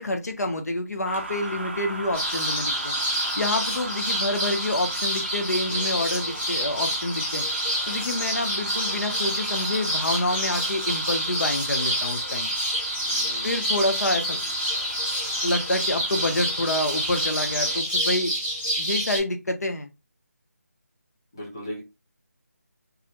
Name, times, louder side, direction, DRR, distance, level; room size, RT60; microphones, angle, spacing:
voice 1, 0.0-2.9 3.4-7.4 7.9-12.5 13.4-14.4 15.4-18.3 18.8-19.9, left 1 dB, 75° left, 6 dB, 0.6 m, -27 dB
sound 1, 1.0-17.8, right 2 dB, 40° right, 0.4 m, -38 dB
sound 2, 2.1-19.2, equal, 35° left, 1.1 m, -28 dB
voice 2, 13.0-13.6 21.3-21.8, equal, 15° left, -4 dB, 0.5 m, -38 dB
2.4 x 2.1 x 2.7 m, 0.25 s
figure-of-eight pair, 175°, 9 cm